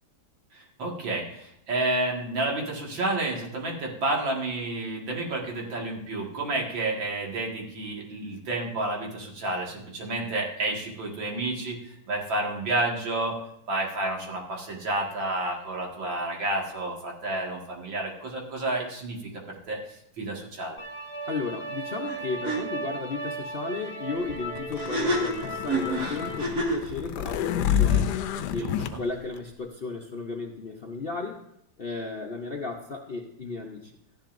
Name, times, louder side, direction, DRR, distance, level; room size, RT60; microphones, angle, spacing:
voice 1, 0.5-13.3 13.7-20.8 27.6-28.1 28.5-29.0, right 2 dB, 85° right, -1 dB, 2.7 m, -30 dB
sound 1, 20.8-26.4, right 1 dB, 10° left, 1.0 m, -36 dB
voice 2, 21.3-28.2 28.5-31.4 31.8-33.9, left 4 dB, 50° left, 1 dB, 0.6 m, -34 dB
sound 2, 22.1-22.2 22.4-22.6 24.8-26.9, right 1 dB, 55° right, 2.4 m, -28 dB
sound 3, 24.3-28.9, left 11 dB, 70° left, 1.0 m, -28 dB
14.0 x 10.5 x 2.6 m, 0.75 s
omnidirectional pair, 2.0 m